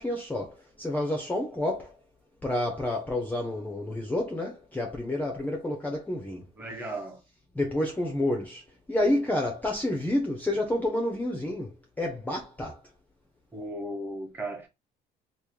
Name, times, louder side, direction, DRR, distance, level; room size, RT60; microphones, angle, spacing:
voice 1, 0.0-1.9 2.4-6.4 6.7-6.9 7.5-8.6 8.9-12.8, left 1 dB, 10° left, 0.7 m, -29 dB
voice 2, 6.6-7.2 13.5-14.7, right 1 dB, 10° right, 1.3 m, -36 dB
3.1 x 2.5 x 3.8 m
cardioid pair, 110°, 17 cm